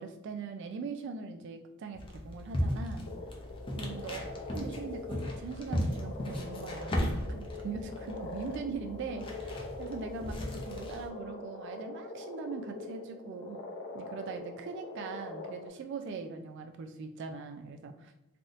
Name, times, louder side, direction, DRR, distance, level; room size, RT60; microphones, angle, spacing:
voice 1, 0.0-3.1 3.8-13.6 13.9-18.1, right 4 dB, 60° right, 5 dB, 0.3 m, -41 dB
sound 1, 1.9-11.1, equal, 25° left, 0.5 m, -36 dB
sound 2, 3.1-15.7, left 2 dB, 65° left, 0.7 m, -43 dB
3.4 x 2.6 x 2.4 m, 0.92 s
head